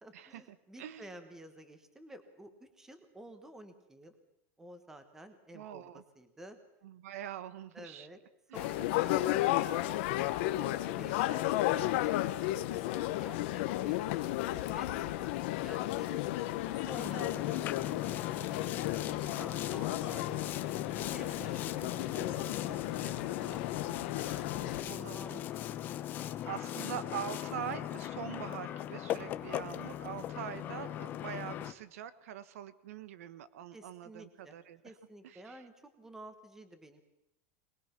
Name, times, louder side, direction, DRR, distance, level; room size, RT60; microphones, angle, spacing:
voice 1, 0.0-4.2 4.6-6.6 7.7-8.2 8.5-14.1 14.6-16.2 16.6-20.4 20.9-25.8 26.2-26.4 33.7-34.6 34.8-37.0, right 1 dB, 5° right, 9 dB, 1.3 m, -52 dB
voice 2, 5.5-6.0 6.8-8.1 8.5-8.6 17.0-17.4 24.9-25.4 26.5-34.8 35.2-35.6, right 10 dB, 85° right, 15 dB, 1.2 m, -43 dB
sound 1, 8.5-24.8, left 15 dB, 50° left, 1.1 m, -33 dB
Boat Water vehicle, 16.9-31.7, left 12 dB, 25° left, 0.7 m, -39 dB
21.0 x 21.0 x 6.0 m, 0.86 s
supercardioid pair, 180°, 8 cm